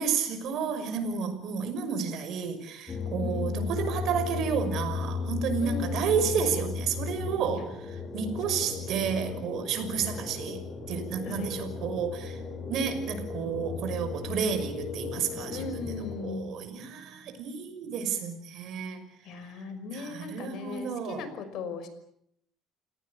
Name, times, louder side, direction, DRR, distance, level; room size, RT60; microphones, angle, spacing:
voice 1, 0.0-7.7 8.1-12.4 12.7-19.0 19.9-21.2, right 6 dB, 60° right, 8 dB, 6.1 m, -31 dB
sound 1, 2.9-16.4, left 4 dB, 30° left, 5.3 m, -35 dB
voice 2, 3.2-3.8 5.6-6.6 7.5-7.6 8.5-9.4 11.2-11.6 15.5-16.6 19.2-21.9, left 4 dB, 65° left, 10 dB, 5.7 m, -39 dB
29.5 x 18.0 x 8.6 m, 0.72 s
cardioid pair, 125°, 0 cm